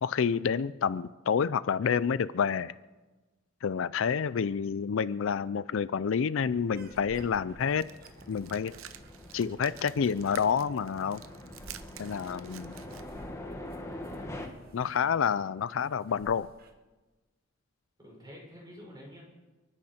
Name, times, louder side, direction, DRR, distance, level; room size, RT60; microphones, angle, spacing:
voice 1, 0.0-2.7 3.6-7.8 8.3-8.7 9.3-11.2 12.0-12.8 14.7-16.5, left 6 dB, 70° left, 0.4 m, -28 dB
voice 2, 4.3-4.6 14.8-15.3 18.0-19.2, equal, 20° right, 5.2 m, -49 dB
sound 1, 6.5-14.5, left 1 dB, 15° left, 1.6 m, -45 dB
sound 2, 6.7-16.7, right 2 dB, 50° right, 1.3 m, -56 dB
sound 3, 7.7-13.0, right 10 dB, 90° right, 0.8 m, -49 dB
29.5 x 9.9 x 4.3 m
head